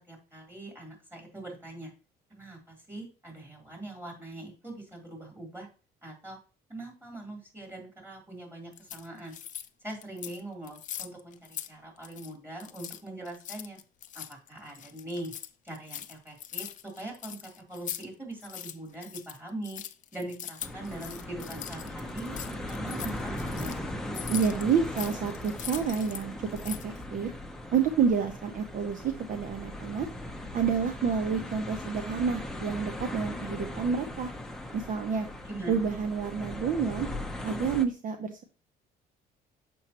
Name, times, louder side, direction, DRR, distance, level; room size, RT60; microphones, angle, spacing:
voice 1, 0.1-1.9 2.3-5.7 6.0-6.4 6.7-9.3 9.8-13.8 14.1-15.3 15.6-16.7 17.0-19.8 20.1-23.8 35.4-35.8, right 1 dB, 15° right, 0 dB, 3.3 m, -42 dB
sound 1, 8.7-9.7 10.0-10.4 10.7-11.7 12.0-12.3 12.6-18.1 18.3-26.2 26.5-27.0, left 11 dB, 50° left, 0.5 m, -41 dB
sound 2, 20.6-37.9, left 1 dB, 5° left, 0.8 m, -39 dB
voice 2, 24.3-27.3 27.7-30.1 30.5-34.3 34.7-35.3 35.7-37.1 37.4-38.4, right 6 dB, 50° right, 7 dB, 0.8 m, -29 dB
7.1 x 5.3 x 2.9 m, 0.35 s
cardioid pair, 110°, 17 cm